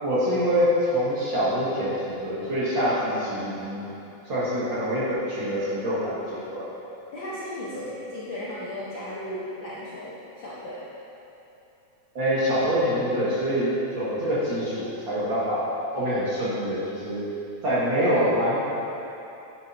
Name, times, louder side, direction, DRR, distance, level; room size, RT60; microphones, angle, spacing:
voice 1, 0.0-3.9 4.3-6.7 7.7-7.9 12.1-17.3 17.6-18.6, equal, 45° right, -10 dB, 2.2 m, -25 dB
voice 2, 7.1-10.8, left 1 dB, 60° left, -7 dB, 1.2 m, -36 dB
9.9 x 9.1 x 2.8 m, 2.9 s
omnidirectional pair, 3.5 m